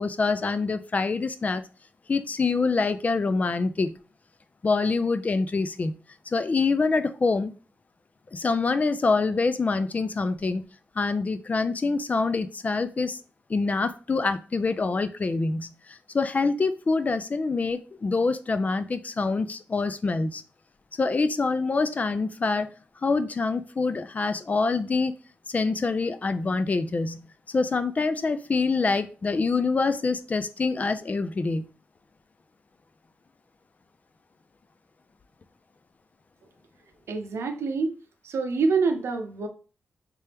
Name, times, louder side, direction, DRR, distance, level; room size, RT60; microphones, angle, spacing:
voice 1, 0.0-1.6 2.1-4.0 4.6-5.9 6.3-7.5 8.3-10.6 11.0-13.2 13.5-20.4 21.0-22.7 23.0-25.1 25.5-31.7, left 4 dB, 35° left, 0.3 m, -25 dB
voice 2, 37.1-37.9 38.2-39.5, right 4 dB, 85° right, 0.6 m, -26 dB
3.3 x 3.3 x 2.9 m
wide cardioid pair, 100°, 4 cm